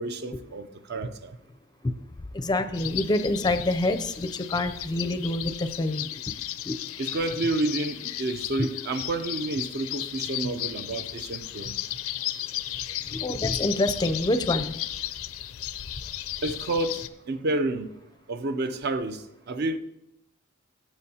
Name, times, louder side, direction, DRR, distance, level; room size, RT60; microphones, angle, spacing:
voice 1, 0.0-1.4 7.0-11.8 16.4-17.9 18.3-19.8, right 2 dB, 50° right, 0.5 m, -30 dB
voice 2, 2.3-6.2 6.6-6.8 13.1-14.7, left 2 dB, 20° left, 0.4 m, -26 dB
sound 1, 2.7-17.1, left 13 dB, 75° left, 0.4 m, -35 dB
15.0 x 7.1 x 2.8 m
head